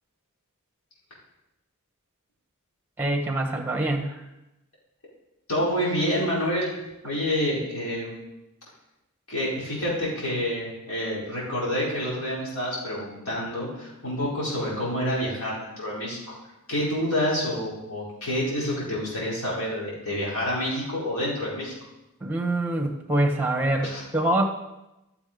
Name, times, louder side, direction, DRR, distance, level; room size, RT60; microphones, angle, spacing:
voice 1, 3.0-4.2 22.2-24.5, right 1 dB, 10° right, 3 dB, 1.4 m, -25 dB
voice 2, 5.5-6.7 7.0-8.2 9.3-16.3 16.7-21.7 23.8-24.0, equal, 90° left, -6 dB, 4.9 m, -28 dB
13.0 x 7.0 x 5.3 m, 0.95 s
head